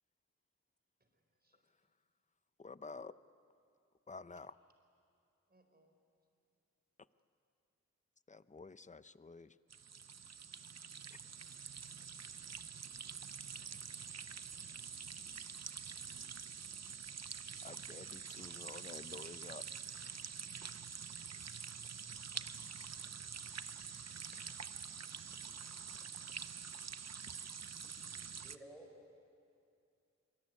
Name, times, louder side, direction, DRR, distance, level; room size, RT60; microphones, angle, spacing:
voice 1, 1.0-1.7 5.5-6.0 11.0-11.3 13.6-14.8 22.4-22.6 23.0-23.9 24.3-26.6, right 1 dB, 30° right, 4 dB, 4.4 m, -71 dB
voice 2, 2.6-3.2 4.1-4.5 8.3-9.6 11.1-11.2 17.6-19.6, left 4 dB, 25° left, 14 dB, 0.6 m, -50 dB
sound 1, 9.7-28.6, right 6 dB, 60° right, 0.8 m, -47 dB
voice 3, 27.6-29.2, right 1 dB, ahead, -1 dB, 6.8 m, -58 dB
25.0 x 24.5 x 9.5 m, 2.5 s
wide cardioid pair, 90°, 30 cm